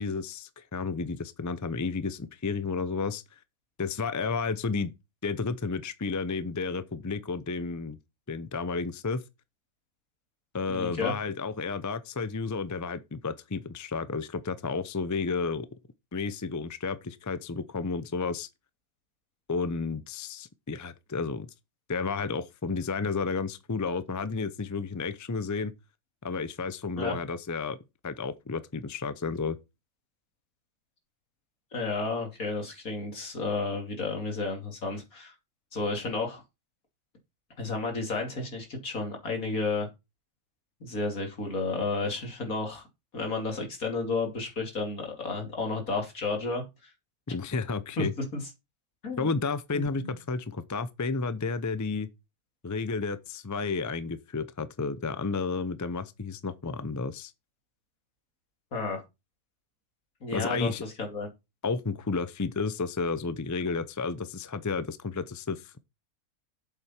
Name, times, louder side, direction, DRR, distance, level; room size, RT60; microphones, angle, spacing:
voice 1, 0.0-3.2 3.8-4.9 5.2-8.0 8.3-9.2 10.5-15.7 16.1-18.5 19.5-21.5 21.9-25.7 26.2-27.8 28.0-29.6 47.3-48.1 49.2-52.1 52.6-57.3 60.3-60.8 61.6-65.7, left 4 dB, 25° left, 0.3 m, -32 dB
voice 2, 10.7-11.1 27.0-27.1 31.7-35.3 35.7-36.4 37.6-39.9 40.8-42.8 43.1-46.6 48.0-48.1 48.3-48.4 49.0-49.3 50.0-50.1 58.7-59.0 60.2-61.3, left 3 dB, 70° left, 3.3 m, -32 dB
8.1 x 7.4 x 4.4 m
omnidirectional pair, 1.5 m